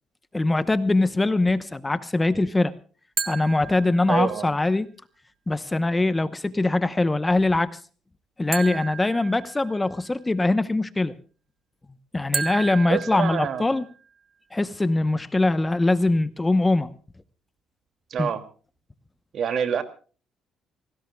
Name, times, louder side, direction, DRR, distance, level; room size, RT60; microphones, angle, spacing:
voice 1, 0.3-2.7 3.3-4.9 5.5-7.8 8.4-11.1 12.1-13.8 14.5-16.9 18.2-18.3, left 2 dB, 15° left, 13 dB, 0.9 m, -22 dB
sound 1, 3.2-4.5 8.5-10.0 12.3-14.0, right 5 dB, 30° right, 1.9 m, -33 dB
voice 2, 4.1-4.5 12.9-13.8 18.1-18.4 19.3-19.8, right 7 dB, 55° right, 10 dB, 2.5 m, -26 dB
27.0 x 18.5 x 2.3 m, 0.39 s
cardioid pair, 115°, 0 cm